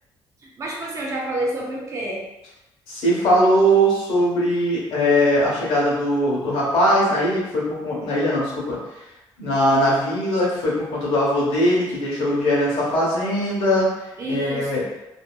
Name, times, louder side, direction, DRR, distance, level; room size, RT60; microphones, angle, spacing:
voice 1, 0.6-2.3 14.2-14.9, right 1 dB, 35° right, -2 dB, 0.6 m, -28 dB
voice 2, 2.9-8.8 9.4-13.9 14.3-14.8, equal, 90° left, -5 dB, 1.1 m, -20 dB
2.7 x 2.5 x 2.3 m, 0.95 s
cardioid pair, 130°, 9 cm